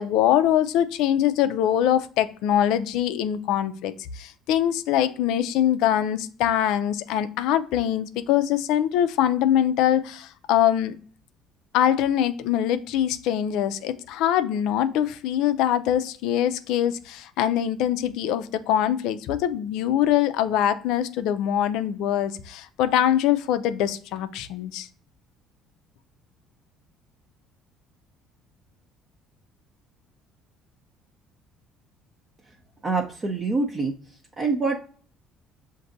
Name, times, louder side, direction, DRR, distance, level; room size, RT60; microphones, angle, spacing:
voice 1, 0.0-11.0 11.7-24.9, left 11 dB, 70° left, 11 dB, 0.3 m, -23 dB
voice 2, 32.8-33.9 34.4-34.8, right 3 dB, 35° right, 0 dB, 0.6 m, -25 dB
6.5 x 2.6 x 2.6 m, 0.44 s
hypercardioid pair, 60°, 0 cm